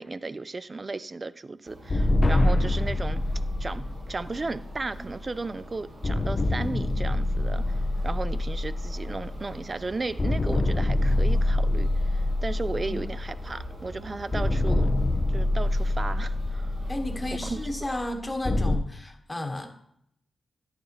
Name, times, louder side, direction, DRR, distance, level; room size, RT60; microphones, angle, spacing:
voice 1, 0.0-3.2 3.6-14.9 15.3-16.8 17.4-17.6, right 3 dB, 35° right, 14 dB, 0.4 m, -35 dB
sound 1, 1.6-17.8, right 1 dB, 75° right, 3.6 m, -45 dB
sound 2, 1.9-5.5 6.0-9.8 10.2-13.8 14.3-18.8, left 1 dB, 35° left, 0.5 m, -26 dB
voice 2, 16.9-19.7, left 1 dB, 20° left, 4 dB, 1.2 m, -33 dB
10.5 x 6.4 x 3.0 m, 0.73 s
cardioid pair, 90°, 0 cm